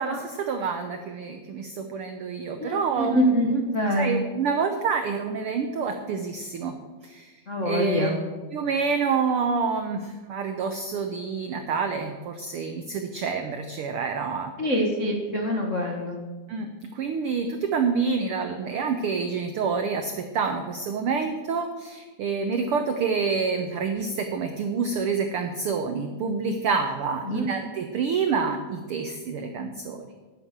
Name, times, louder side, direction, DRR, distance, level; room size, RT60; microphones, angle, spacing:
voice 1, 0.0-3.5 4.0-6.8 7.0-7.3 7.6-8.1 8.5-14.5 16.5-30.0, right 5 dB, 80° right, 6 dB, 1.2 m, -27 dB
voice 2, 2.6-4.2 7.5-8.2 14.6-16.2 27.2-27.4, equal, 80° left, 1 dB, 0.6 m, -25 dB
9.8 x 9.4 x 7.4 m, 1.3 s
omnidirectional pair, 3.6 m